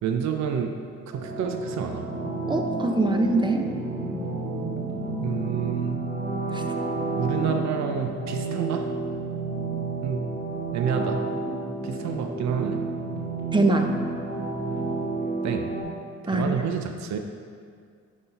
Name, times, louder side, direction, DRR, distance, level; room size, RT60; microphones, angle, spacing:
voice 1, 0.0-0.7 1.1-2.1 5.2-6.0 7.2-8.9 10.0-10.2 10.7-11.2 11.8-12.8 15.4-15.7 16.2-17.2, right 7 dB, 65° right, 5 dB, 0.6 m, -28 dB
sound 1, 1.1-15.8, right 3 dB, 35° right, 1.4 m, -30 dB
voice 2, 2.5-3.7 6.5-6.6 13.5-13.9 16.3-16.6, right 2 dB, 15° right, 4 dB, 0.7 m, -23 dB
10.5 x 4.0 x 4.1 m, 2.2 s
cardioid pair, 90°, 30 cm